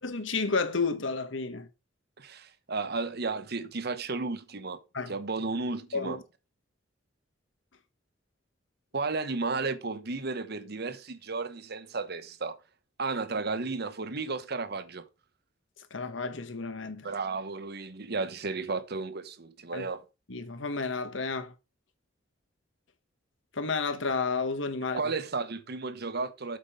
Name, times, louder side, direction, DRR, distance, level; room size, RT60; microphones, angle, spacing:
voice 1, 0.0-1.7 4.9-5.1 5.9-6.2 15.9-17.1 19.7-19.9 20.3-21.5 23.5-25.0, left 4 dB, 75° left, 1.3 m, -31 dB
voice 2, 2.2-4.8 5.1-6.2 8.9-12.6 13.0-15.1 17.0-20.0 24.9-26.6, right 3 dB, 55° right, 1.0 m, -33 dB
8.0 x 5.4 x 5.5 m
head